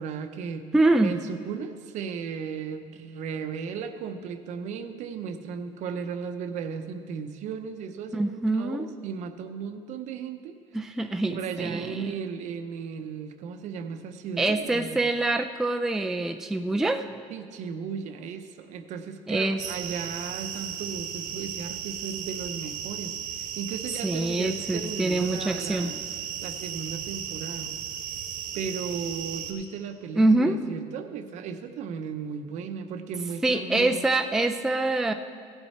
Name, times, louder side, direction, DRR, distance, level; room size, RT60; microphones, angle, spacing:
voice 1, 0.0-0.7 1.0-10.6 10.9-11.0 11.3-15.0 17.3-26.0 26.4-27.8 28.5-34.1, right 6 dB, 60° right, 9 dB, 0.7 m, -35 dB
voice 2, 0.7-1.1 8.1-8.9 10.7-12.1 14.4-17.2 19.3-19.6 24.0-25.9 30.2-30.6 33.4-35.1, right 2 dB, 5° right, 6 dB, 0.3 m, -25 dB
sound 1, 19.6-29.5, right 8 dB, 90° right, 1.2 m, -35 dB
15.0 x 8.0 x 4.2 m, 2.2 s
cardioid pair, 130°, 14 cm